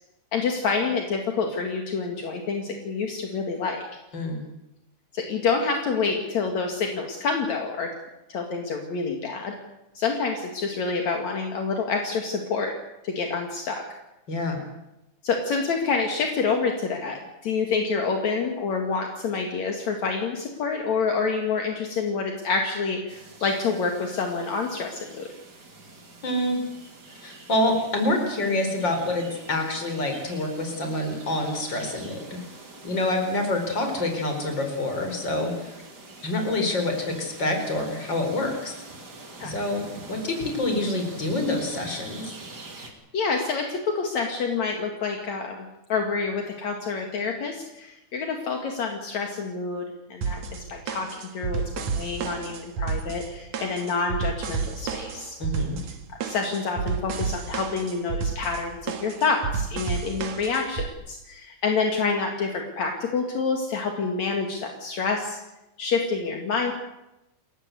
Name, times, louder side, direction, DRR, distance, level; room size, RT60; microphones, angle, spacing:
voice 1, 0.3-3.9 5.1-7.9 8.3-9.6 10.0-12.7 13.0-13.8 15.2-25.3 39.4-39.5 42.8-42.9 43.1-49.9 50.1-55.4 56.2-65.4 65.8-66.7, left 4 dB, 65° left, 3 dB, 3.3 m, -27 dB
voice 2, 14.3-14.6 26.2-26.6 27.2-32.4 32.8-35.8 36.2-38.8 39.4-39.8 40.1-42.3 55.4-55.8, left 1 dB, 35° left, 4 dB, 5.1 m, -27 dB
sound 1, 23.1-42.9, right 2 dB, 35° right, 3.6 m, -45 dB
sound 2, 50.2-60.9, right 5 dB, 65° right, 2.9 m, -31 dB
29.0 x 14.5 x 8.3 m, 0.93 s
omnidirectional pair, 3.5 m